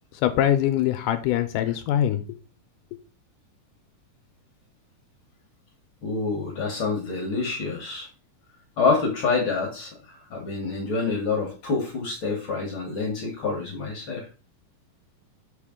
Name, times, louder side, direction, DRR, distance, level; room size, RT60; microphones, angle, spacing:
voice 1, 0.2-2.2, left 11 dB, 80° left, 9 dB, 2.1 m, -23 dB
voice 2, 6.0-8.1 8.8-14.3, left 4 dB, 55° left, 1 dB, 1.5 m, -27 dB
6.8 x 4.9 x 3.7 m, 0.33 s
omnidirectional pair, 3.9 m